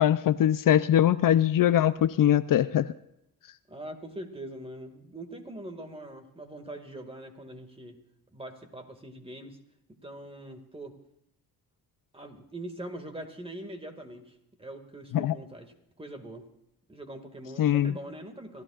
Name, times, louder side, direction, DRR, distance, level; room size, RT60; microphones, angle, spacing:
voice 1, 0.0-2.9 15.1-15.3 17.6-17.9, left 11 dB, 65° left, 13 dB, 0.6 m, -22 dB
voice 2, 3.7-8.0 8.3-9.6 10.0-11.0 12.1-16.5 16.9-18.6, right 1 dB, 15° right, 5 dB, 2.0 m, -42 dB
28.0 x 14.0 x 2.4 m, 0.81 s
cardioid pair, 115°, 36 cm